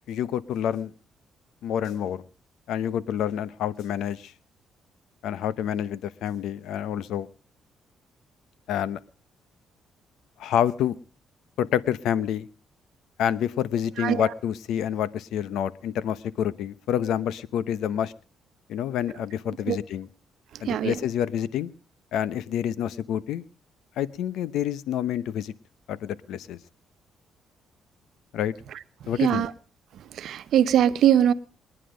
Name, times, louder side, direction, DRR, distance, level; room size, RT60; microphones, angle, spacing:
voice 1, 0.1-0.9 1.6-2.2 2.7-4.3 5.2-7.3 8.7-9.0 10.4-11.0 11.6-12.5 13.2-18.1 18.7-20.1 20.6-21.7 22.1-23.4 24.0-25.5 25.9-26.6 28.3-28.5 29.1-29.5, left 10 dB, 80° left, 18 dB, 0.8 m, -28 dB
voice 2, 29.2-29.5 30.2-31.3, right 10 dB, 70° right, 13 dB, 0.9 m, -21 dB
22.0 x 9.9 x 5.0 m, 0.37 s
cardioid pair, 90°, 0 cm